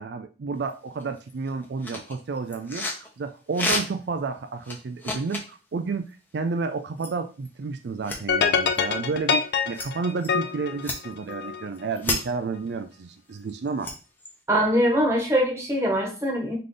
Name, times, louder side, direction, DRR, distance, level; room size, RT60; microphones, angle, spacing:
voice 1, 0.0-13.9, right 4 dB, 75° right, 8 dB, 0.4 m, -31 dB
sound 1, 0.7-0.8 1.0-3.1 3.5-4.1 4.6-5.5 7.0-7.1 7.4-7.5 8.0-8.2 8.8-8.9 9.7-9.9 10.2-10.3 10.8-11.3 11.8-12.2 13.3-14.4, left 2 dB, 10° left, 0.7 m, -31 dB
sound 2, 8.3-11.7, left 6 dB, 65° left, 0.4 m, -25 dB
voice 2, 14.5-16.6, equal, 15° right, -1 dB, 1.1 m, -22 dB
3.8 x 3.3 x 3.8 m, 0.34 s
head